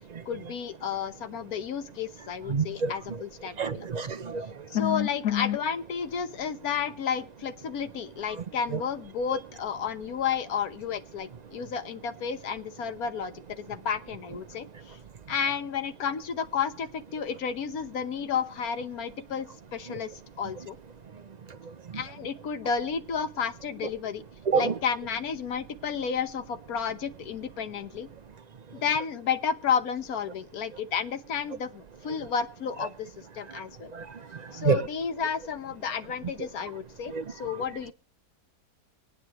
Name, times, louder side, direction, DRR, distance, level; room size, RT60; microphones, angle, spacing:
voice 1, 0.3-3.9 4.7-14.7 15.3-19.5 19.7-20.1 20.4-20.8 21.9-24.2 24.5-28.1 28.8-33.1 33.3-33.9 34.5-37.9, left 7 dB, 65° left, 1.4 m, -31 dB
voice 2, 2.5-2.9 3.6-4.4 24.5-24.7 34.6-34.9 37.1-37.2, right 6 dB, 75° right, 0.3 m, -26 dB
25.0 x 9.6 x 3.0 m
omnidirectional pair, 1.7 m